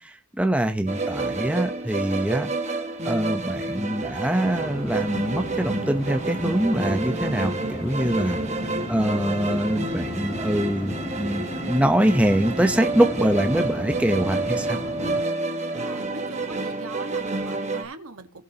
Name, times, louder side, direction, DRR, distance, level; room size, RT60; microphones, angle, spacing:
voice 1, 0.0-2.5 3.0-8.4 8.9-14.8, right 1 dB, 5° right, 5 dB, 0.9 m, -24 dB
sound 1, 0.9-17.8, right 2 dB, 35° right, 1.4 m, -29 dB
sound 2, 4.4-15.2, equal, 25° left, 2.5 m, -35 dB
voice 2, 15.8-18.4, right 3 dB, 80° right, 7 dB, 1.6 m, -40 dB
18.0 x 7.1 x 2.9 m, 0.30 s
head